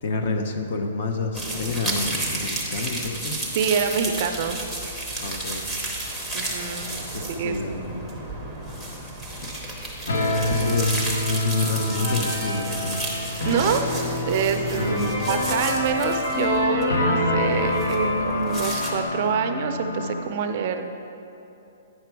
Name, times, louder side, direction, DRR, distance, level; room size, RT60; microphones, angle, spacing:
voice 1, 0.0-3.4 5.2-5.7 7.1-8.1 9.4-9.5 10.4-13.0 14.8-15.2, left 3 dB, 40° left, 5 dB, 0.7 m, -29 dB
sound 1, 1.3-18.9, right 1 dB, 5° left, 0.8 m, -32 dB
voice 2, 3.6-4.6 6.3-6.9 7.3-7.6 13.4-15.0 15.3-20.9, right 7 dB, 35° right, 6 dB, 0.4 m, -26 dB
sound 2, 10.1-20.2, left 2 dB, 90° left, 1.1 m, -28 dB
sound 3, 11.9-13.5 14.0-14.1 14.5-19.0, left 2 dB, 60° left, 1.6 m, -28 dB
9.5 x 5.9 x 4.6 m, 2.8 s
hypercardioid pair, 175°, 0 cm